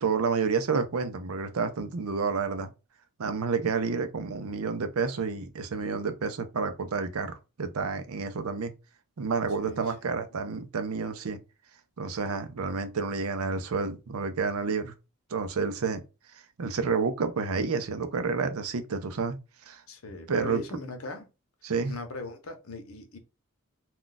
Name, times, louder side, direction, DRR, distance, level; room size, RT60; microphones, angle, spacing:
voice 1, 0.0-2.7 3.2-8.7 9.2-11.4 12.0-14.9 15.3-16.0 16.3-19.4 19.6-19.8 20.3-20.6 21.6-22.0, right 5 dB, 85° right, 0.6 m, -29 dB
voice 2, 9.6-9.9 19.9-21.3 21.8-23.2, left 3 dB, 85° left, 0.8 m, -39 dB
2.4 x 2.3 x 3.8 m
head